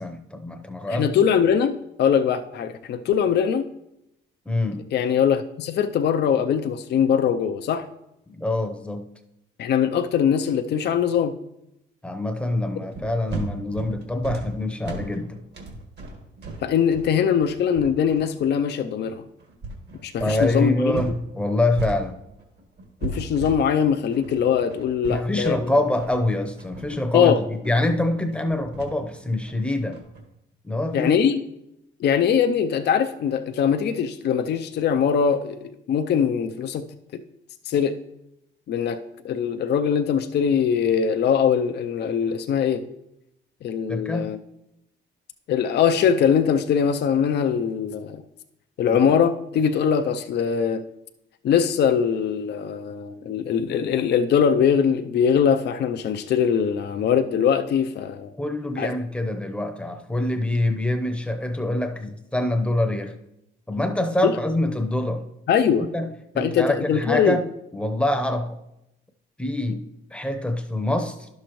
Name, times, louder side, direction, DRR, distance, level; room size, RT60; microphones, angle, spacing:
voice 1, 0.0-1.1 4.5-4.8 8.3-9.1 12.0-15.4 20.2-22.2 25.1-30.0 30.6-31.2 43.9-44.3 48.9-49.0 58.3-63.2 63.7-65.3 65.8-67.5 67.7-68.6 69.4-69.8 70.1-71.3, left 1 dB, 5° left, 5 dB, 0.8 m, -25 dB
voice 2, 0.9-3.6 4.9-7.9 9.6-11.3 16.6-19.2 20.0-21.0 23.0-25.6 27.1-27.4 30.9-31.4 32.0-36.8 37.7-37.9 38.7-42.8 43.6-44.4 45.5-48.2 48.8-50.8 51.4-58.3 58.8-58.9 64.2-64.4 65.5-65.9 66.4-67.4, left 7 dB, 60° left, 7 dB, 0.5 m, -22 dB
sound 1, 12.9-21.2 21.5-30.2, right 3 dB, 60° right, 1.8 m, -36 dB
11.0 x 6.4 x 3.1 m, 0.86 s
cardioid pair, 90°, 20 cm